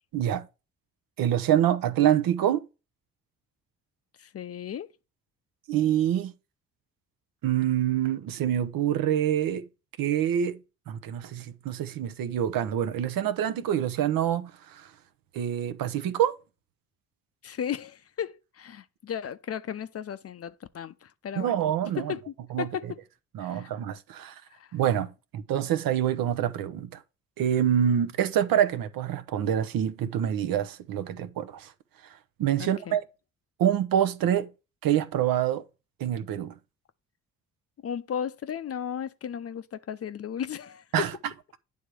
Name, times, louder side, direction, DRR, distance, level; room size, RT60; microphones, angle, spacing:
voice 1, 0.1-0.5 1.2-2.6 5.7-6.3 7.4-9.6 10.0-10.6 10.9-14.9 15.3-16.4 21.4-22.2 22.5-22.7 23.3-24.4 24.7-27.0 27.4-31.7 32.4-33.0 33.6-34.5 34.8-35.6 36.0-36.5 40.9-41.1, right 10 dB, 60° right, 0.8 m, -26 dB
voice 2, 4.2-4.9 17.4-21.5 22.0-22.9 23.4-23.7 24.5-24.8 32.6-33.0 37.8-41.1, left 8 dB, 40° left, 0.6 m, -35 dB
9.3 x 3.5 x 6.1 m
hypercardioid pair, 45°, 39 cm